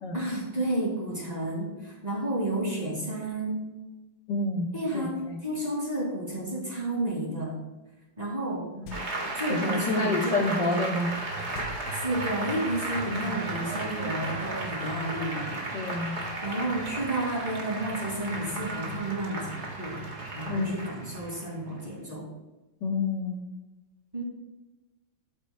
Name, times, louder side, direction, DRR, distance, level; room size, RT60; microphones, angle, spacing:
voice 1, 0.1-3.7 4.7-7.6 8.2-8.7 9.2-10.7 11.9-15.7 16.4-20.0 20.3-22.3 24.1-24.2, right 1 dB, 20° right, -3 dB, 2.4 m, -31 dB
voice 2, 4.3-5.4 8.7-9.0 9.5-11.1 13.1-13.4 15.7-16.2 20.5-20.9 22.8-23.4, left 3 dB, 65° left, 1 dB, 2.0 m, -29 dB
sound 1, 8.8-9.5 11.5-12.6, left 1 dB, 85° left, 1.7 m, -45 dB
Applause, 8.9-21.9, right 2 dB, 35° right, 1.9 m, -34 dB
13.0 x 8.3 x 2.3 m, 1.1 s
omnidirectional pair, 2.1 m